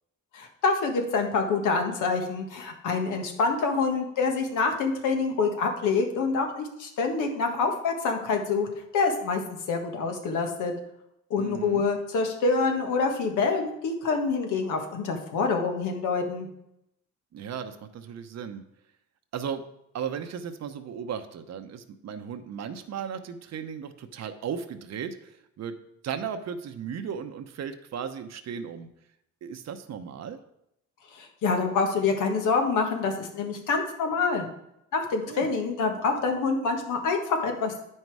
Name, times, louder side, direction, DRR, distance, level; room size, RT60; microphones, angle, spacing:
voice 1, 0.3-8.7 8.9-9.4 9.7-10.7 11.3-16.5 31.1-34.5 34.9-37.8, left 4 dB, 85° left, 4 dB, 1.5 m, -26 dB
voice 2, 11.3-11.9 17.3-18.6 19.3-19.6 19.9-25.3 25.6-25.7 26.0-28.9 29.4-30.4 35.3-35.5, right 7 dB, 60° right, 8 dB, 0.8 m, -36 dB
8.8 x 5.5 x 4.7 m, 0.80 s
cardioid pair, 90°, 30 cm